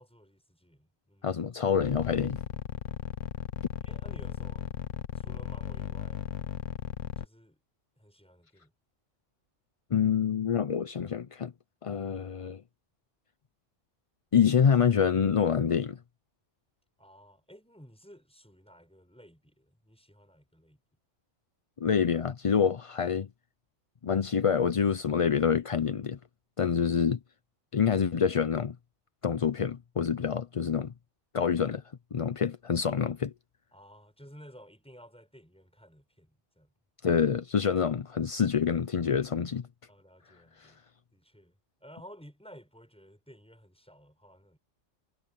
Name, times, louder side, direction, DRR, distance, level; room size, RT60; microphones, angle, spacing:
voice 1, 0.0-1.4 3.8-4.7 5.2-6.2 7.2-7.6 8.0-8.7 17.0-20.8 33.7-36.7 39.9-40.8 41.1-44.6, equal, 5° left, 7.2 m, -54 dB
voice 2, 1.2-2.4 9.9-11.5 11.8-12.6 14.3-16.0 21.8-23.3 24.0-26.2 26.6-27.2 27.7-28.8 29.2-30.9 31.3-31.8 32.1-33.3 37.0-39.6 40.6-40.7, left 7 dB, 45° left, 0.4 m, -26 dB
sound 1, 1.8-7.3, left 10 dB, 80° left, 1.2 m, -35 dB
omnidirectional pair, 1.3 m